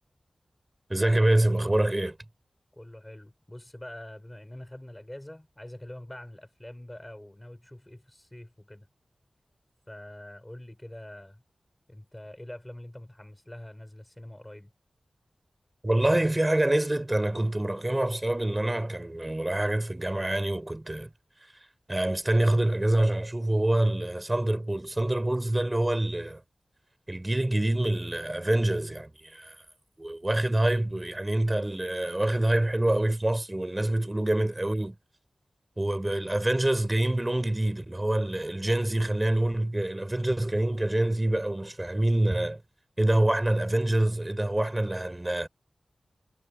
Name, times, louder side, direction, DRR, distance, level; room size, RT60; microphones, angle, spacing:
voice 1, 0.9-2.2 15.8-21.1 21.9-26.4 27.1-29.6 30.0-35.0 35.8-42.6 43.0-45.5, right 1 dB, 20° right, 3.6 m, -26 dB
voice 2, 2.7-8.9 9.9-11.4 11.9-14.7, left 1 dB, 15° left, 4.6 m, -45 dB
wide cardioid pair, 65°, 0 cm